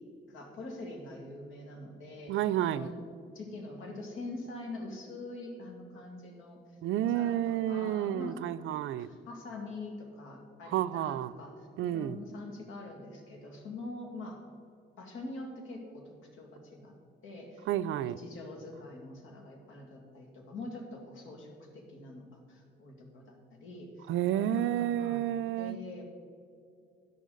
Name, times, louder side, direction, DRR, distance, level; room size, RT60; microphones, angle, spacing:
voice 1, 0.3-3.0 3.3-6.6 7.0-8.4 9.0-14.4 15.0-16.9 17.2-17.7 18.0-25.2 25.6-26.0, left 2 dB, 85° left, 2 dB, 2.2 m, -44 dB
voice 2, 2.3-2.9 6.8-9.1 10.7-11.3 11.8-12.2 17.7-18.2 24.1-25.8, right 12 dB, 80° right, 17 dB, 0.4 m, -30 dB
11.5 x 11.0 x 3.9 m, 2.5 s
cardioid pair, 90°, 20 cm